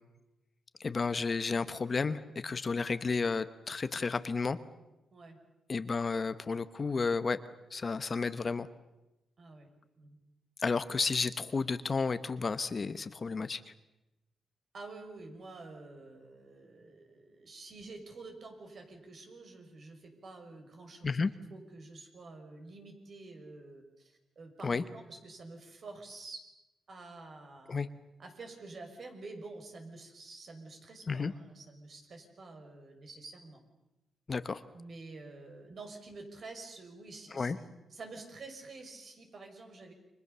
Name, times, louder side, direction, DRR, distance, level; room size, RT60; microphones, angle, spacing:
voice 1, 0.8-4.6 5.7-7.4 7.7-8.7 10.6-13.7 21.0-21.3 24.6-24.8 27.7-27.9 31.1-31.3 34.3-34.6 37.3-37.6, left 4 dB, 35° left, 12 dB, 1.1 m, -32 dB
voice 2, 9.4-9.7 10.0-10.2 14.7-26.4 26.9-27.8 28.2-33.6 34.7-39.9, right 3 dB, 50° right, 4 dB, 6.1 m, -49 dB
29.5 x 25.0 x 6.9 m, 0.99 s
cardioid pair, 105°, 0 cm